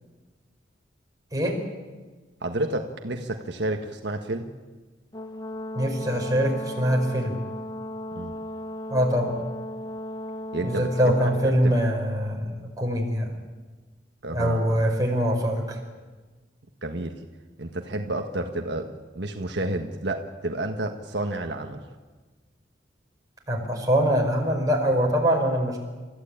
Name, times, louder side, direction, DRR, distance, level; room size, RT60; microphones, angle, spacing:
voice 1, 2.4-4.5 8.1-8.3 10.5-11.3 11.6-11.7 14.2-14.8 16.8-17.1 17.6-21.8, right 1 dB, 75° right, 4 dB, 1.4 m, -30 dB
Brass instrument, 5.1-11.5, left 1 dB, 20° left, 1.0 m, -35 dB
voice 2, 5.7-7.4 8.9-9.4 10.6-13.3 14.3-15.8 23.5-25.8, equal, 20° right, 0 dB, 4.9 m, -23 dB
29.5 x 14.5 x 8.8 m, 1.3 s
head